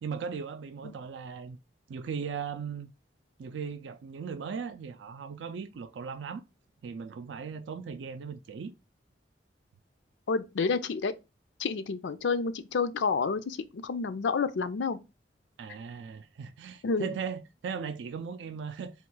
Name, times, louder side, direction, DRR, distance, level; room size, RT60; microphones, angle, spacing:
voice 1, 0.0-1.6 1.9-2.9 3.4-6.4 6.8-8.7 15.6-18.9, right 6 dB, 90° right, 0.4 m, -38 dB
voice 2, 10.3-11.1 11.6-15.0 16.8-17.1, left 4 dB, 90° left, 0.5 m, -29 dB
3.6 x 2.3 x 4.4 m
head